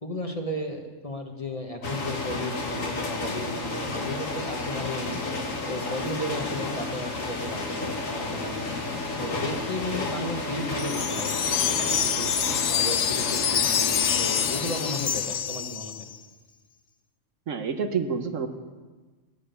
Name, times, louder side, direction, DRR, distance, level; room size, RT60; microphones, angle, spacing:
voice 1, 0.0-5.2 5.7-8.7 9.2-16.1, left 1 dB, 30° left, 3 dB, 1.4 m, -34 dB
sound 1, 1.8-15.4, left 2 dB, 85° left, 2.2 m, -32 dB
Wind chime, 10.8-16.2, left 8 dB, 55° left, 0.6 m, -26 dB
voice 2, 17.5-18.5, right 6 dB, 80° right, 7 dB, 1.4 m, -28 dB
17.5 x 9.9 x 6.9 m, 1.3 s
omnidirectional pair, 1.3 m